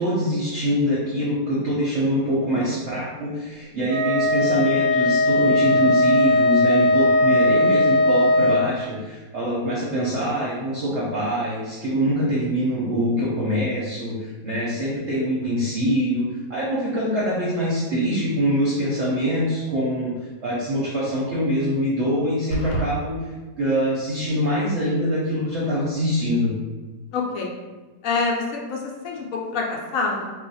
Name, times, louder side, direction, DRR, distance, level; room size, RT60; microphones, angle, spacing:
voice 1, 0.0-20.1 20.4-23.2 23.6-26.5, equal, 55° right, -7 dB, 0.8 m, -24 dB
Wind instrument woodwind instrument, 3.9-8.7, left 2 dB, 75° right, 0.3 m, -18 dB
sound 1, 22.5-22.9, equal, 80° left, 1.2 m, -27 dB
voice 2, 27.1-27.5 28.0-29.2 29.5-30.3, left 4 dB, 65° left, -1 dB, 0.9 m, -26 dB
2.4 x 2.4 x 4.0 m, 1.2 s
omnidirectional pair, 1.7 m